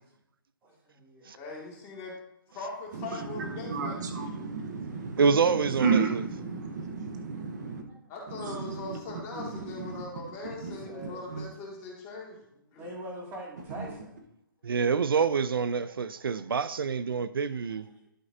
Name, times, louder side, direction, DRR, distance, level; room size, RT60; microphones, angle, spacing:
voice 1, 0.6-1.3 6.6-6.7 7.3-8.0 10.6-11.5 12.7-14.3 17.7-18.1, right 1 dB, 20° right, 2.3 m, -45 dB
voice 2, 1.3-2.2 2.5-4.0 8.1-12.5 12.7-12.9, left 3 dB, 25° left, 2.2 m, -40 dB
voice 3, 2.9-7.8 8.3-9.0 9.3-10.0 10.6-11.4 13.8-13.9, right 5 dB, 55° right, 1.1 m, -33 dB
voice 4, 5.2-6.2 14.6-17.9, right 5 dB, 90° right, 0.4 m, -26 dB
11.5 x 5.8 x 2.7 m
hypercardioid pair, 150°, 12 cm